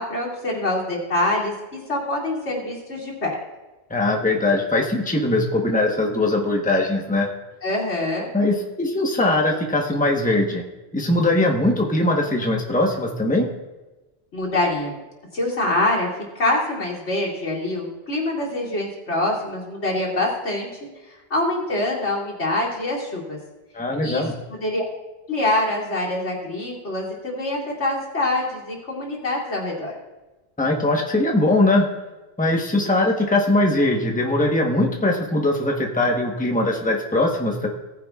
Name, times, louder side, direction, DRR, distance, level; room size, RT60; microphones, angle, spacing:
voice 1, 0.0-3.4 7.6-8.3 14.3-15.0 15.3-16.1 16.3-20.7 21.3-23.4 24.0-24.2 24.6-24.8 25.3-29.9, left 2 dB, 85° left, -4 dB, 2.8 m, -25 dB
voice 2, 3.9-7.3 8.3-10.6 10.9-13.5 23.7-24.3 30.6-31.9 32.4-37.7, left 2 dB, 10° left, 0 dB, 1.1 m, -21 dB
17.5 x 9.8 x 2.4 m, 1.1 s
omnidirectional pair, 1.1 m